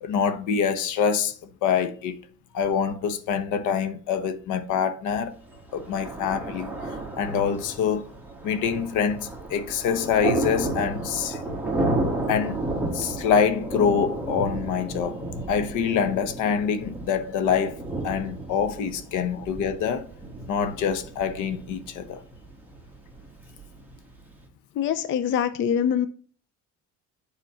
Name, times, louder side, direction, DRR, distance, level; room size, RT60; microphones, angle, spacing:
voice 1, 0.0-2.2 2.5-5.4 5.7-6.7 7.2-8.0 8.4-11.4 12.3-12.6 12.9-15.2 15.5-17.8 18.0-20.1 20.5-22.2, left 7 dB, 80° left, 1.1 m, -25 dB
Thunder, 5.5-24.4, right 2 dB, 5° right, 1.4 m, -32 dB
voice 2, 24.8-26.1, left 8 dB, 40° left, 0.6 m, -24 dB
8.1 x 4.4 x 5.6 m
cardioid pair, 155°, 30 cm